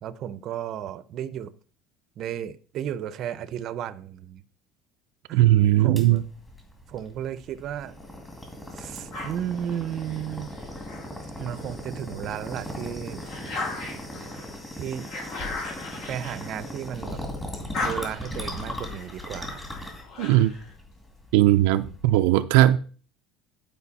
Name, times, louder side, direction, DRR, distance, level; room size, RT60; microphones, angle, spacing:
voice 1, 0.0-1.5 2.2-4.4 5.3-5.4 5.8-6.2 6.9-7.9 8.7-10.5 11.4-13.3 14.7-15.1 16.1-17.2 17.8-19.6 21.6-21.9, right 10 dB, 45° right, 0.7 m, -34 dB
voice 2, 5.3-6.2 20.2-20.5 21.3-22.8, right 14 dB, 85° right, 0.5 m, -18 dB
sound 1, 6.0-22.2, left 1 dB, 10° left, 2.2 m, -38 dB
sound 2, 9.1-11.8 12.3-17.1 17.4-20.7, left 3 dB, 55° left, 3.8 m, -38 dB
11.5 x 5.1 x 4.1 m
cardioid pair, 155°, 0 cm